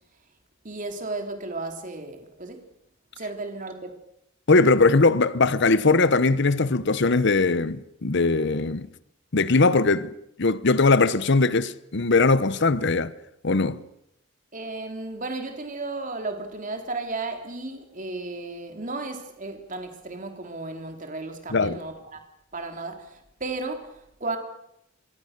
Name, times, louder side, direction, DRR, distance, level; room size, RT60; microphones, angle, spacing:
voice 1, 0.6-2.6 3.2-4.0 14.5-22.2 22.5-24.4, right 3 dB, 40° right, 3.5 m, -34 dB
voice 2, 4.5-8.9 9.3-10.1 10.4-13.1 13.4-13.8 21.5-21.8, left 3 dB, 60° left, 0.9 m, -20 dB
27.5 x 23.0 x 6.7 m
head